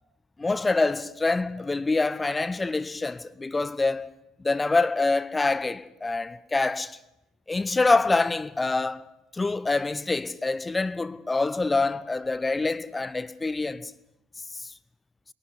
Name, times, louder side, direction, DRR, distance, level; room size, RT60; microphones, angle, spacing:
voice 1, 0.4-4.1 4.4-7.0 7.5-9.1 9.3-13.9 14.5-14.7, left 3 dB, 15° left, 0.9 m, -26 dB
22.5 x 12.0 x 9.8 m
figure-of-eight pair, 60°, 0 cm